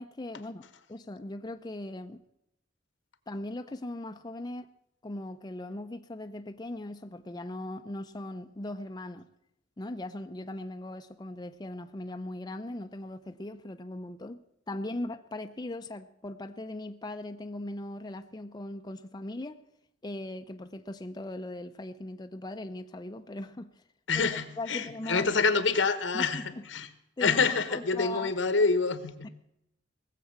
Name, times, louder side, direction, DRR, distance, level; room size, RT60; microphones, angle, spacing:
voice 1, 0.0-2.2 3.3-4.7 5.0-9.3 9.8-14.4 14.7-19.6 20.0-23.7 24.1-25.3 26.1-26.4 27.2-28.3 29.2-29.3, left 1 dB, 20° left, 0.5 m, -39 dB
voice 2, 24.1-26.9 27.2-29.3, left 4 dB, 85° left, 1.2 m, -27 dB
18.5 x 7.6 x 7.1 m
head